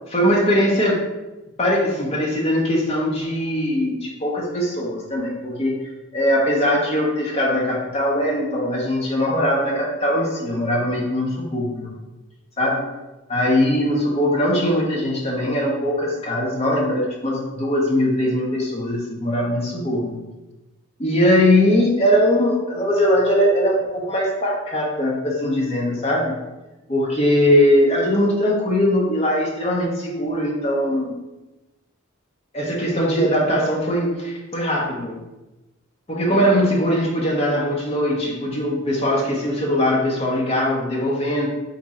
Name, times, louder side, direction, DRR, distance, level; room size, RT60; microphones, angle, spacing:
voice 1, 0.1-1.1 1.6-5.8 6.1-11.9 12.6-12.9 13.3-20.2 21.0-26.4 26.9-31.1 32.5-35.2 36.1-41.5, equal, 30° left, -3 dB, 0.8 m, -20 dB
3.6 x 2.7 x 4.1 m, 1.1 s
head